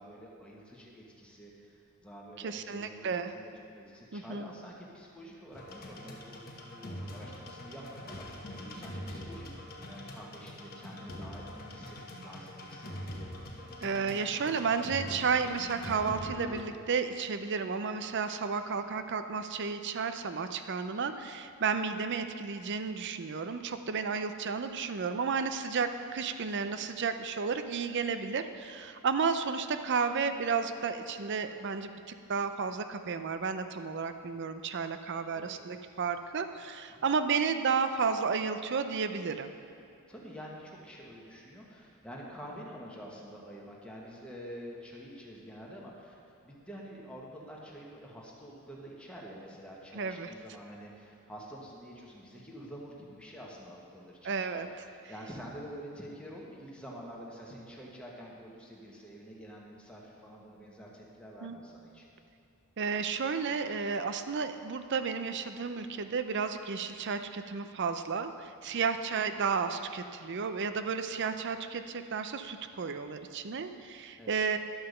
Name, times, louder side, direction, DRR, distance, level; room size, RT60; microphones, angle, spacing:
voice 1, 0.0-13.1 35.4-35.6 36.9-37.0 40.1-46.2 46.4-62.1 68.6-68.8 74.2-74.4, equal, 5° left, -4 dB, 1.4 m, -48 dB
voice 2, 2.4-3.3 4.1-4.5 13.8-39.5 49.9-50.3 54.2-54.7 61.4-61.6 62.8-74.6, right 5 dB, 55° right, 9 dB, 0.5 m, -32 dB
sound 1, 5.5-16.6, left 1 dB, 45° left, 1.1 m, -43 dB
11.0 x 5.7 x 6.7 m, 2.6 s
head